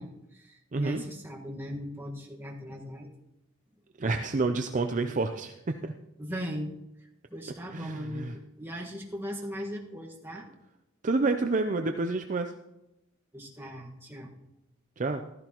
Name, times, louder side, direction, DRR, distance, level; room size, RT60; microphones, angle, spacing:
voice 1, 0.0-3.1 6.2-6.7 7.3-10.5 13.3-14.3, equal, 10° right, -1 dB, 1.6 m, -38 dB
voice 2, 0.7-1.0 4.0-5.9 7.7-8.3 11.0-12.5 15.0-15.2, right 3 dB, 35° right, 6 dB, 0.5 m, -29 dB
14.5 x 13.0 x 3.0 m, 0.91 s
head